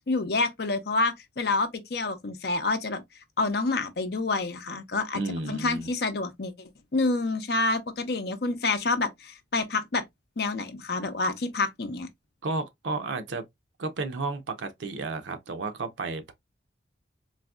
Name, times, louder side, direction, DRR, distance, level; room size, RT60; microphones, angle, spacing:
voice 1, 0.0-3.0 3.4-5.2 5.5-6.5 6.9-10.0 10.4-12.1, left 3 dB, 60° left, 0.6 m, -28 dB
voice 2, 5.1-5.9 12.4-13.4 13.8-16.3, right 3 dB, 85° right, 0.6 m, -32 dB
4.0 x 2.6 x 2.3 m
head